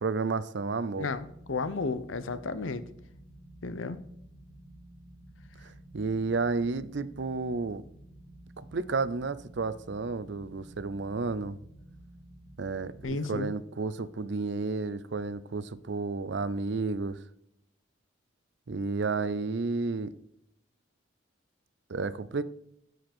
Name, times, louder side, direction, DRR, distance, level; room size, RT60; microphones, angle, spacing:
voice 1, 0.0-1.1 5.6-7.8 8.6-11.6 12.6-17.2 18.7-20.1 21.9-22.4, right 4 dB, 65° right, 0.5 m, -31 dB
voice 2, 1.0-2.8 3.6-4.0 13.0-13.5, left 3 dB, 90° left, 0.8 m, -33 dB
sound 1, 1.0-13.0, right 1 dB, 35° right, 1.5 m, -52 dB
7.8 x 7.7 x 4.4 m
head